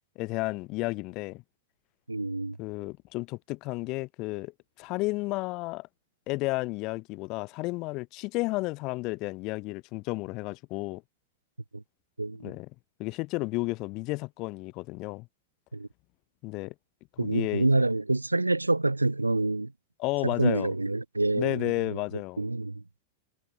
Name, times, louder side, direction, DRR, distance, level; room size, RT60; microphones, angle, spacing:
voice 1, 0.2-1.4 2.6-4.5 4.8-5.9 6.3-11.0 12.4-12.7 13.0-15.3 16.4-16.7 17.2-17.7 20.0-20.7 21.3-22.4, left 23 dB, 40° left, 0.6 m, -32 dB
voice 2, 2.1-2.6 11.7-11.8 12.2-12.5 15.7-15.9 17.2-19.7 20.2-22.0 22.4-22.8, right 2 dB, 85° right, 0.4 m, -27 dB
figure-of-eight pair, 90°, 0 cm